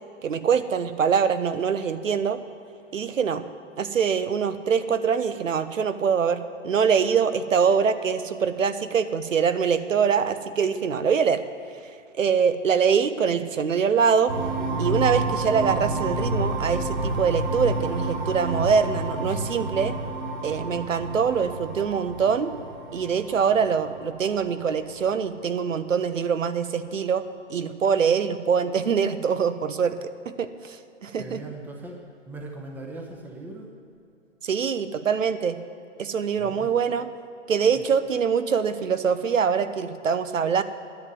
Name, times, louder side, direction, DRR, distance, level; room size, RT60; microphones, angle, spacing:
voice 1, 0.2-2.4 2.9-3.4 3.8-11.4 12.1-14.3 14.8-20.0 20.4-22.5 22.9-30.0 30.3-31.4 34.4-35.6 36.0-37.1 37.5-40.6, right 6 dB, 85° right, 12 dB, 0.9 m, -24 dB
sound 1, 14.3-24.8, right 2 dB, 45° right, 3.5 m, -29 dB
voice 2, 31.1-33.7 36.4-36.7 37.7-38.0, right 2 dB, 5° right, 1 dB, 0.8 m, -40 dB
10.5 x 7.2 x 9.5 m, 2.6 s
hypercardioid pair, 140°, 38 cm